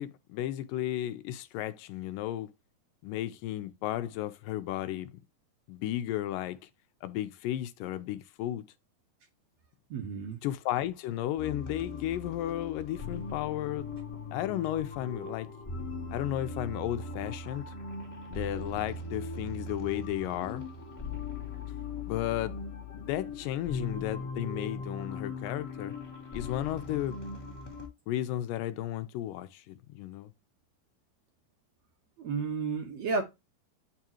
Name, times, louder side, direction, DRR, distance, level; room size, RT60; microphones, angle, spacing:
voice 1, 0.0-2.5 3.0-5.1 5.7-6.6 7.0-8.6 10.4-13.9 14.3-15.5 16.1-17.7 18.3-20.6 22.0-22.7 22.9-25.9 26.3-27.2 28.1-30.3, left 13 dB, 80° left, 2.2 m, -34 dB
voice 2, 9.9-10.4 32.2-33.2, right 4 dB, 65° right, 1.8 m, -32 dB
sound 1, 11.4-27.9, left 3 dB, 15° left, 1.8 m, -39 dB
9.0 x 3.6 x 2.9 m
omnidirectional pair, 4.0 m